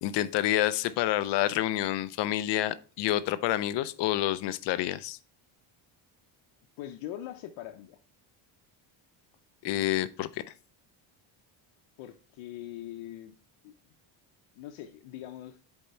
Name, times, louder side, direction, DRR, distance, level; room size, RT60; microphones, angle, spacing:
voice 1, 0.0-5.2 9.6-10.4, left 14 dB, 60° left, 0.5 m, -28 dB
voice 2, 6.8-8.0 12.0-13.3 13.6-13.7 14.6-15.6, left 12 dB, 85° left, 0.8 m, -42 dB
7.1 x 4.4 x 4.2 m
cardioid pair, 160°, 48 cm